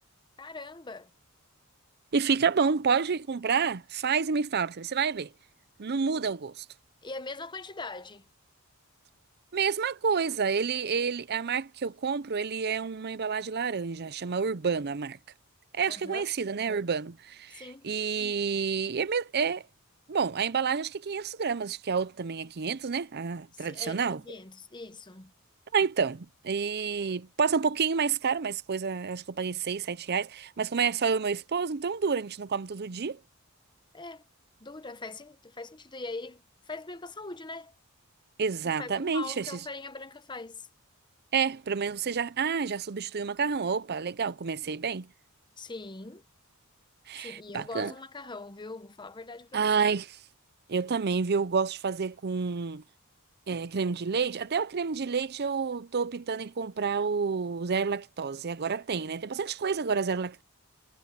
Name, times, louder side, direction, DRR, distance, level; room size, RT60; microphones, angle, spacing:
voice 1, 0.4-1.1 7.0-8.3 15.9-16.3 17.5-17.9 23.5-25.3 33.9-34.2 34.6-36.4 36.7-37.7 38.6-40.7 45.6-46.2 47.2-49.7, left 3 dB, 20° left, 0.9 m, -41 dB
voice 2, 2.1-5.3 5.8-6.6 9.5-15.2 15.7-19.6 20.1-24.2 25.7-33.2 38.4-39.5 41.3-45.1 47.1-47.9 49.5-50.2 50.7-52.8 53.5-60.4, right 5 dB, 45° right, 0.6 m, -29 dB
head